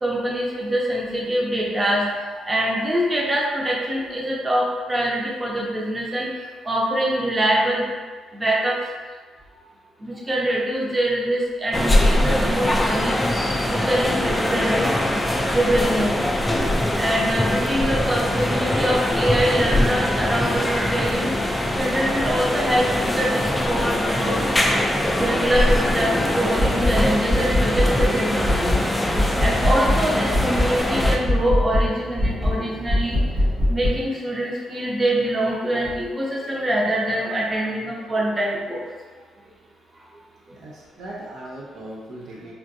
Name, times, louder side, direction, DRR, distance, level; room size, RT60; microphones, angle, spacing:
voice 1, 0.0-2.0 2.4-6.3 6.6-7.9 8.3-8.8 10.0-13.2 13.6-15.2 15.5-16.2 17.0-21.3 21.8-24.3 25.2-28.7 29.4-33.2 33.7-38.8, right 1 dB, 25° right, -4 dB, 0.7 m, -24 dB
sound 1, 11.7-31.2, left 1 dB, 10° left, 0.4 m, -22 dB
sound 2, 26.6-27.0 27.3-28.1 28.4-28.8 29.1-30.0 30.3-30.7 31.0-31.9 32.2-32.6 32.9-34.0, left 1 dB, 45° right, 1.2 m, -21 dB
sound 3, 28.5-33.7, right 2 dB, 90° right, 1.0 m, -39 dB
voice 2, 40.5-42.5, right 1 dB, 65° right, -4 dB, 0.5 m, -38 dB
3.5 x 2.5 x 2.6 m, 1.5 s
cardioid pair, 90°, 0 cm